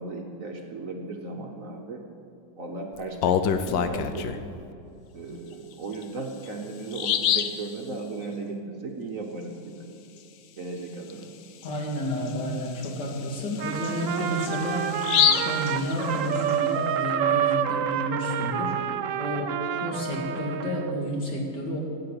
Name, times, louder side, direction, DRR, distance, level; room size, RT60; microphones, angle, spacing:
voice 1, 0.0-2.0 2.6-4.3 5.1-9.9 10.6-11.3, right 3 dB, 50° right, 2 dB, 1.3 m, -36 dB
Bird vocalization bird call bird song, 3.0-4.5 5.9-6.0 6.5-6.6 6.9-7.6 11.1-11.2 11.6-11.7 12.3-16.5, left 8 dB, 75° left, 1.4 m, -27 dB
voice 2, 11.6-18.7 19.2-21.8, equal, 60° left, -1 dB, 3.0 m, -30 dB
Trumpet, 13.6-20.9, right 10 dB, 75° right, 0.7 m, -28 dB
16.0 x 7.8 x 8.6 m, 2.6 s
omnidirectional pair, 2.1 m